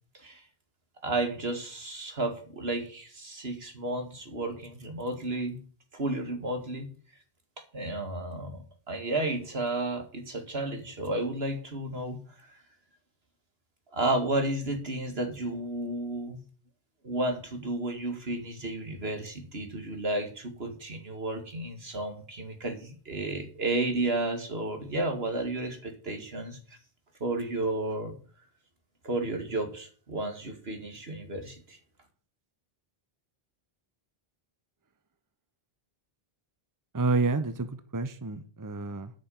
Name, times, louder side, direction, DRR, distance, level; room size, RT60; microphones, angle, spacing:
voice 1, 1.0-5.6 5.9-6.9 7.7-12.6 13.9-16.4 17.0-26.8 27.2-28.1 29.0-31.8, right 2 dB, 75° right, 2.5 m, -32 dB
voice 2, 36.9-39.1, right 3 dB, 20° right, 0.8 m, -29 dB
9.6 x 6.4 x 8.7 m
omnidirectional pair, 1.0 m